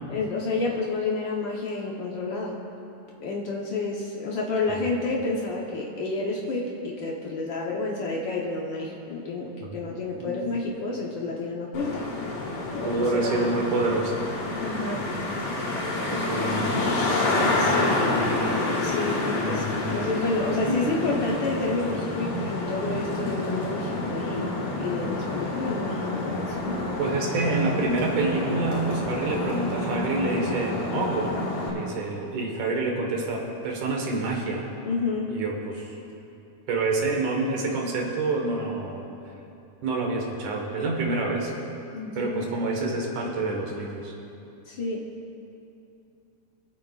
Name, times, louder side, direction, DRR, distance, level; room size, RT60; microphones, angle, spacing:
voice 1, 0.1-2.6 3.2-12.0 12.7-13.7 14.6-15.1 17.6-18.0 18.8-19.6 19.9-24.5 24.8-26.8 34.8-35.3 41.9-42.5 44.7-45.0, left 3 dB, 70° left, -3 dB, 1.1 m, -30 dB
voice 2, 10.2-10.6 12.8-14.3 16.1-16.9 19.4-20.1 20.7-20.9 27.0-31.4 31.6-34.7 35.3-36.0 36.7-39.1 39.8-41.5 42.2-44.1, right 3 dB, 90° right, 0 dB, 2.8 m, -27 dB
Traffic noise roadway noise, 11.7-31.7, left 2 dB, 90° left, 3.2 m, -28 dB
21.5 x 8.5 x 2.4 m, 2.7 s
omnidirectional pair, 3.3 m